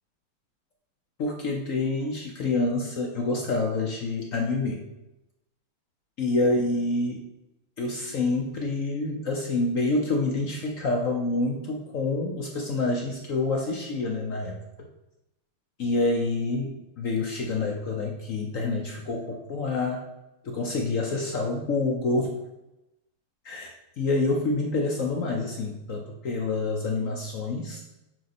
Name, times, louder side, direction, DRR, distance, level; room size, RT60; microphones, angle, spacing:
voice 1, 1.2-4.8 6.2-7.2 7.8-14.6 15.8-20.0 20.4-22.3 23.4-27.8, left 2 dB, 70° left, 1 dB, 0.7 m, -27 dB
9.4 x 3.9 x 4.1 m, 0.94 s
omnidirectional pair, 2.4 m